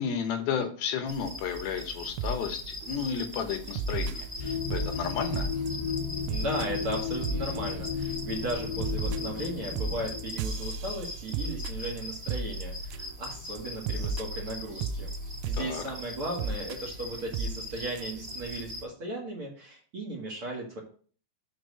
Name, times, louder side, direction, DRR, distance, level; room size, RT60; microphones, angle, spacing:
voice 1, 0.0-5.5 15.6-15.8, left 7 dB, 75° left, 6 dB, 2.8 m, -32 dB
sound 1, 1.1-18.8, left 1 dB, 25° right, 3.0 m, -41 dB
sound 2, 2.2-2.4 2.8-3.1 3.8-4.9 5.3-5.7 6.0-6.1 6.3-6.7 6.9-7.0 7.2-7.6 7.9-8.2 8.5-13.3 13.6-13.7 13.9-15.7 16.4-16.8 17.3-17.6 18.0-18.1 18.3-18.4, right 4 dB, 85° right, 2.5 m, -33 dB
sound 3, 4.4-10.3, left 6 dB, 40° left, 1.5 m, -34 dB
voice 2, 6.3-15.1 15.4-20.8, right 1 dB, 45° right, -3 dB, 2.2 m, -36 dB
6.3 x 4.7 x 6.7 m, 0.44 s
omnidirectional pair, 4.4 m